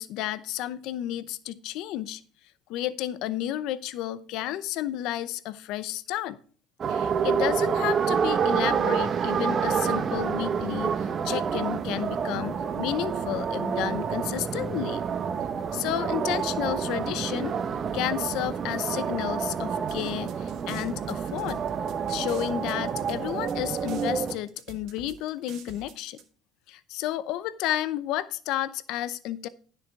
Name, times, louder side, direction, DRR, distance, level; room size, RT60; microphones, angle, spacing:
voice 1, 0.0-2.2 2.7-6.4 6.9-15.0 15.7-17.6 17.9-21.6 22.1-26.2 26.7-29.5, left 13 dB, 70° left, 0.7 m, -31 dB
sound 1, 6.8-24.4, right 6 dB, 35° right, 0.9 m, -28 dB
sound 2, 19.9-26.2, right 5 dB, 65° right, 2.1 m, -47 dB
10.5 x 6.6 x 4.7 m
cardioid pair, 115°, 0 cm